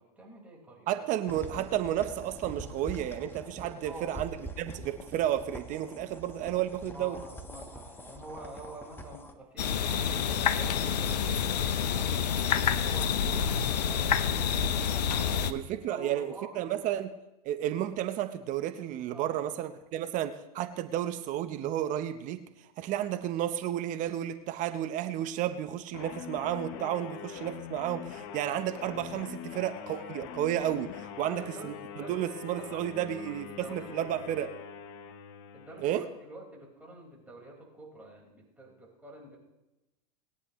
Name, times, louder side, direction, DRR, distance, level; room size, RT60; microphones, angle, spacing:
voice 1, 0.0-0.9 3.8-4.2 6.9-12.5 12.8-14.1 14.8-16.7 19.1-19.5 29.2-29.4 31.0-34.2 34.5-34.6 35.5-39.4, right 1 dB, 5° right, -3 dB, 4.9 m, -48 dB
voice 2, 0.9-4.3 4.6-7.2 15.5-17.1 17.4-22.4 22.8-34.5 35.8-36.0, right 12 dB, 40° right, 10 dB, 0.9 m, -32 dB
sound 1, 1.3-9.3, right 1 dB, 10° left, 1.3 m, -44 dB
sound 2, 9.6-15.5, left 7 dB, 75° left, 0.9 m, -28 dB
sound 3, 25.9-36.2, left 8 dB, 50° left, 1.1 m, -43 dB
20.5 x 9.7 x 3.2 m, 0.97 s
hypercardioid pair, 110°, 21 cm